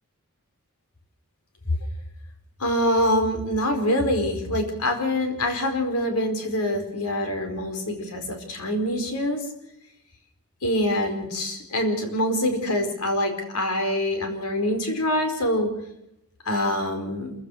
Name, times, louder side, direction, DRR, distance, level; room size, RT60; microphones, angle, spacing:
voice 1, 2.6-9.4 10.6-15.7 16.4-17.3, left 1 dB, 90° left, 5 dB, 4.7 m, -25 dB
27.5 x 15.5 x 6.5 m, 0.84 s
head